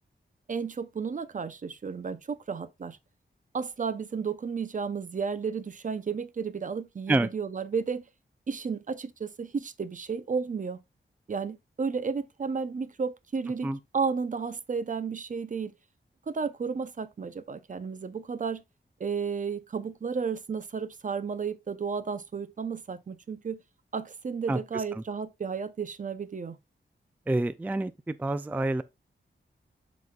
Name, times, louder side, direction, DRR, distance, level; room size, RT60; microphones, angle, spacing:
voice 1, 0.5-3.0 3.5-8.1 8.5-10.8 11.3-15.7 16.3-18.6 19.0-23.6 23.9-26.6, right 5 dB, 45° right, 0.7 m, -33 dB
voice 2, 24.5-25.0 27.3-28.8, right 2 dB, 10° right, 0.3 m, -28 dB
12.0 x 4.1 x 2.3 m
wide cardioid pair, 140°, 19 cm